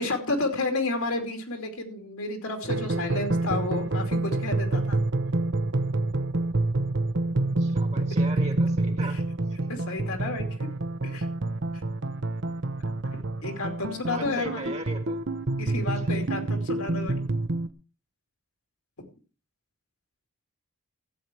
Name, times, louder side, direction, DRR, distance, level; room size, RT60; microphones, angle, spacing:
voice 1, 0.0-5.0 9.1-9.2 9.7-10.4 11.0-11.3 13.4-14.7 15.6-17.2 19.0-19.1, left 2 dB, 70° left, 4 dB, 2.7 m, -31 dB
sound 1, 2.6-17.7, right 2 dB, 55° right, 0.9 m, -27 dB
voice 2, 7.6-9.2 13.8-15.2 15.9-16.1, right 2 dB, 30° right, 6 dB, 1.6 m, -38 dB
14.5 x 8.9 x 4.5 m, 0.36 s
head